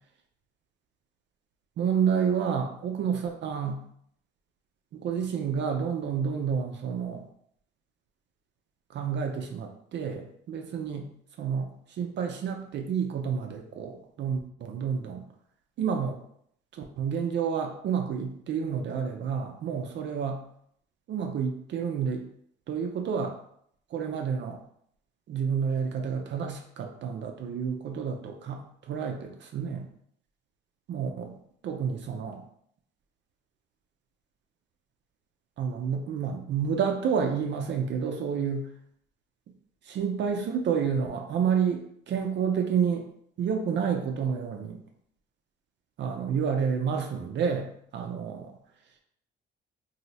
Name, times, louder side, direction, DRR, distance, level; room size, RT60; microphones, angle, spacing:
voice 1, 1.8-3.8 4.9-7.2 8.9-11.1 11.4-15.2 15.8-16.2 16.7-20.4 21.1-22.3 22.7-23.4 23.9-24.6 25.3-29.9 30.9-31.3 31.6-32.4 35.6-38.7 39.8-43.1 43.4-44.8 46.0-48.5, right 7 dB, 65° right, 3 dB, 0.5 m, -29 dB
2.7 x 2.0 x 4.0 m, 0.68 s
cardioid pair, 90°, 20 cm